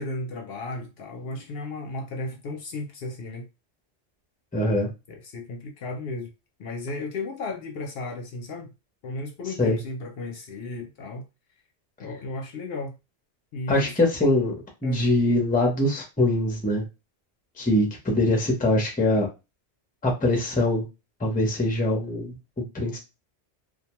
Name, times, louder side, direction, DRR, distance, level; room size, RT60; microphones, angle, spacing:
voice 1, 0.0-3.5 5.1-6.3 6.6-8.7 9.0-11.3 12.0-12.9 13.5-13.9 14.8-15.1, left 2 dB, 65° left, 0.7 m, -34 dB
voice 2, 4.5-4.9 9.6-9.8 13.7-14.5 14.8-16.8 17.6-19.3 20.0-20.9 21.2-23.0, left 1 dB, 10° left, 0.5 m, -23 dB
2.3 x 2.2 x 2.9 m
omnidirectional pair, 1.2 m